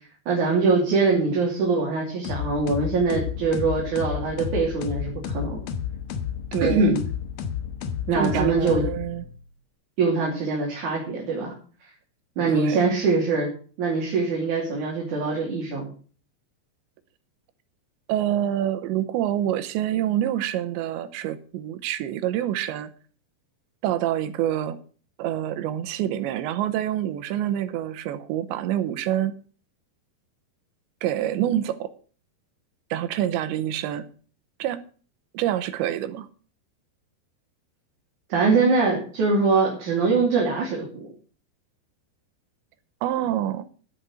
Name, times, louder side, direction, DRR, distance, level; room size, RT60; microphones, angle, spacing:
voice 1, 0.3-5.6 6.6-7.0 8.1-8.8 10.0-11.5 12.4-13.5 13.8-15.9 38.3-41.1, right 4 dB, 45° right, 3.9 m, -23 dB
sound 1, 2.2-9.4, left 8 dB, 70° left, 2.6 m, -31 dB
voice 2, 6.5-7.0 8.1-9.2 12.5-12.9 18.1-22.9 23.8-24.8 25.2-29.3 31.0-31.9 32.9-34.1 34.6-34.8 35.3-36.3 43.0-43.6, right 11 dB, 80° right, 3.1 m, -26 dB
11.5 x 8.7 x 6.3 m
omnidirectional pair, 5.2 m